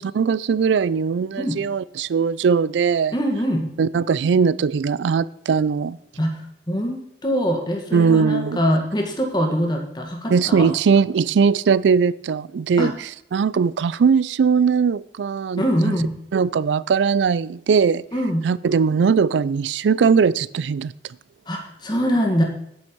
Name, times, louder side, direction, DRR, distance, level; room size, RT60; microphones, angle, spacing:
voice 1, 0.0-3.1 3.8-6.0 7.9-8.6 10.3-12.9 13.3-15.9 16.3-18.0 18.4-20.9, right 6 dB, 85° right, 0.4 m, -20 dB
voice 2, 3.1-3.7 6.2-10.7 12.8-12.9 15.6-16.1 18.1-18.5 21.5-22.4, equal, 25° left, 1.8 m, -23 dB
9.0 x 8.8 x 4.6 m
head